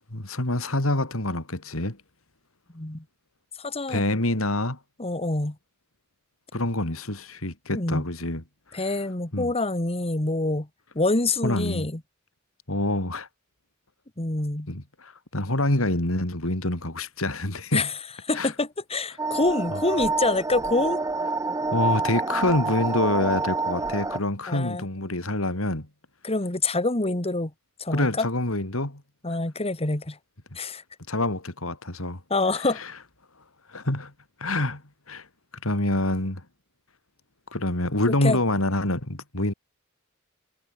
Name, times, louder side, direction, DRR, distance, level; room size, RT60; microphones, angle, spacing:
voice 1, 0.1-2.0 3.9-4.8 6.5-8.4 8.7-8.9 9.3-9.5 11.4-11.9 12.7-13.3 14.7-17.9 18.3-18.5 19.7-19.8 21.7-25.9 27.9-29.0 31.1-32.2 32.5-32.9 33.7-34.1 34.4-34.8 35.1-35.3 35.6-36.4 37.5-39.5, left 1 dB, 75° left, 3.7 m, -26 dB
voice 2, 2.7-3.0 3.6-4.0 5.0-5.6 7.7-8.1 8.7-10.7 11.0-12.0 14.2-14.7 17.7-17.9 18.3-21.0 24.5-24.9 26.2-27.5 27.8-28.3 29.2-30.2 30.6-30.8 32.3-32.8 38.2-38.4, left 2 dB, 30° left, 1.9 m, -26 dB
sound 1, 19.2-24.2, right 3 dB, 15° right, 0.7 m, -27 dB
head